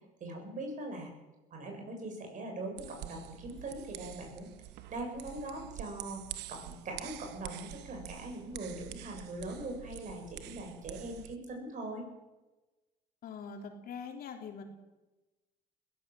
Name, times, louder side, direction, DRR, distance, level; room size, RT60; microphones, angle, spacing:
voice 1, 0.2-1.1 1.5-4.5 4.9-6.2 6.5-12.1, right 2 dB, 50° right, 3 dB, 7.9 m, -41 dB
sound 1, 2.8-11.4, right 13 dB, 90° right, 1.1 m, -47 dB
voice 2, 13.2-14.6, left 6 dB, 60° left, 3 dB, 3.7 m, -43 dB
21.5 x 16.5 x 7.9 m, 1.1 s
cardioid pair, 110°, 17 cm